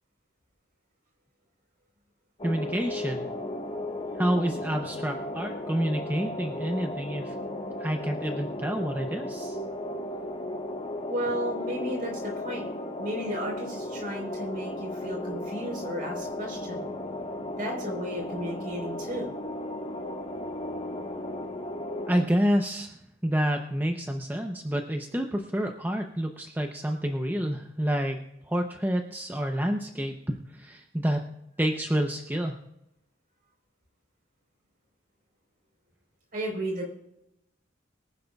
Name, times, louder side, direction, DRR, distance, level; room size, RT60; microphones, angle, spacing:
sound 1, 2.4-22.2, left 1 dB, 30° left, 1.4 m, -35 dB
voice 1, 2.4-3.3 4.2-7.3 7.8-9.6 22.1-23.0 23.2-28.2 28.5-30.1 30.5-31.3 31.6-32.6, equal, 10° right, 3 dB, 0.7 m, -28 dB
voice 2, 11.1-12.7 13.0-16.8 17.6-19.3 36.3-36.9, equal, 45° right, -1 dB, 4.3 m, -34 dB
23.0 x 10.5 x 2.4 m, 0.84 s
head